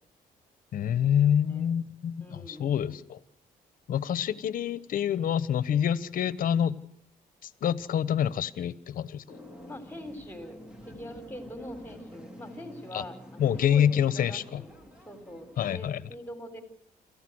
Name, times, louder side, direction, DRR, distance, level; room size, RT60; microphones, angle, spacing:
voice 1, 0.7-3.2 3.9-6.8 7.6-9.4 12.9-13.0 13.4-14.6 15.6-16.0, left 9 dB, 65° left, 17 dB, 1.2 m, -27 dB
voice 2, 2.2-2.7 9.7-16.6, equal, 10° left, 8 dB, 3.9 m, -43 dB
sound 1, 9.3-15.8, equal, 5° right, 2.6 m, -48 dB
28.0 x 15.0 x 6.4 m, 0.75 s
cardioid pair, 110°, 15 cm